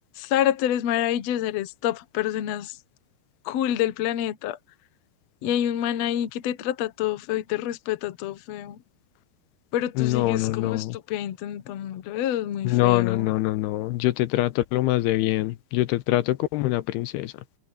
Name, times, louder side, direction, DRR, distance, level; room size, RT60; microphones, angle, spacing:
voice 1, 0.1-2.8 3.4-4.6 5.4-8.8 9.7-13.3, left 11 dB, 70° left, 1.5 m, -27 dB
voice 2, 10.0-11.0 12.6-17.4, left 16 dB, 90° left, 2.8 m, -24 dB
omnidirectional pair, 4.7 m